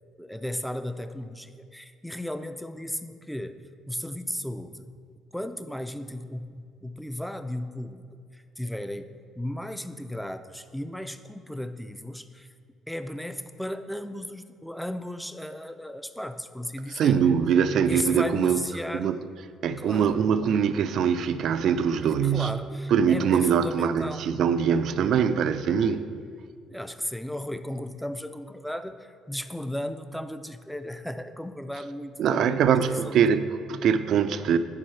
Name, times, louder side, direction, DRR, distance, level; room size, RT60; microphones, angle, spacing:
voice 1, 0.2-3.6 3.9-5.0 5.3-8.0 8.3-12.5 12.9-17.2 17.9-19.2 19.8-20.2 22.0-24.3 26.7-33.2, left 1 dB, ahead, 10 dB, 0.5 m, -35 dB
voice 2, 16.9-18.6 18.9-19.2 19.6-22.5 22.9-26.0 32.2-34.6, right 7 dB, 65° right, 11 dB, 0.4 m, -23 dB
10.5 x 4.6 x 5.6 m, 2.2 s
cardioid pair, 85°, 0 cm